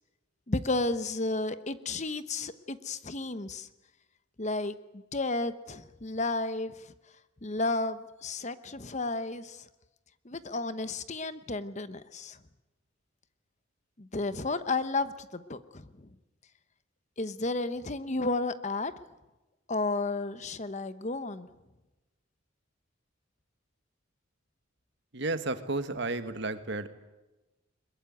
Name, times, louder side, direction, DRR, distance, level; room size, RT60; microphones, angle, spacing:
voice 1, 0.5-3.7 4.4-6.7 7.4-9.6 10.2-12.4 14.0-16.1 17.2-18.9 19.7-21.5, left 2 dB, 35° left, 13 dB, 1.0 m, -32 dB
voice 2, 25.1-26.9, right 2 dB, 55° right, 10 dB, 1.6 m, -32 dB
22.0 x 21.5 x 9.3 m, 1.0 s
head